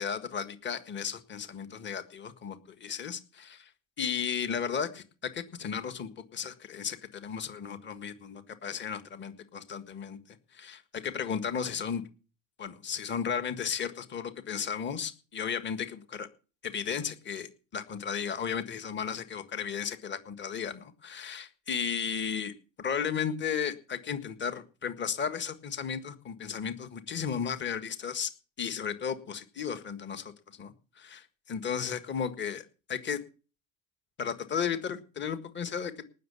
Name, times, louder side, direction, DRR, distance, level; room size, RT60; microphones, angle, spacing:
voice 1, 0.0-3.7 4.0-12.0 12.6-16.3 16.6-28.3 28.6-33.2 34.2-35.9, left 7 dB, 25° left, 10 dB, 1.7 m, -34 dB
19.0 x 6.7 x 6.9 m, 0.37 s
supercardioid pair, 115°, 41 cm